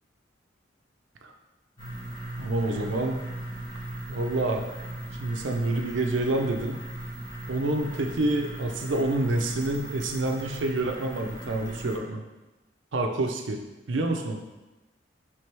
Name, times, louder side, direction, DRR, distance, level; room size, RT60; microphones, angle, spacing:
sound 1, 1.8-12.0, right 1 dB, 30° left, 1.1 m, -38 dB
voice 1, 2.4-3.2 4.1-4.6 5.2-6.8 7.5-12.2 12.9-13.6 13.9-14.4, right 2 dB, 75° right, 3 dB, 0.5 m, -27 dB
4.6 x 3.4 x 3.3 m, 1.1 s
head